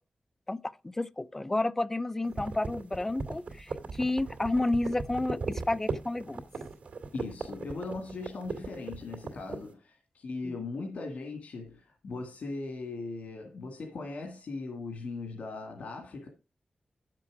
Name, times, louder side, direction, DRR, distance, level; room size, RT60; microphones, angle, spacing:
voice 1, 0.5-6.4 10.4-10.6, left 2 dB, 15° left, 0.5 m, -31 dB
sound 1, 2.2-9.7, right 4 dB, 80° right, 2.3 m, -37 dB
voice 2, 7.1-16.3, left 3 dB, 90° left, 2.0 m, -39 dB
9.6 x 7.5 x 4.8 m
wide cardioid pair, 155°, 2 cm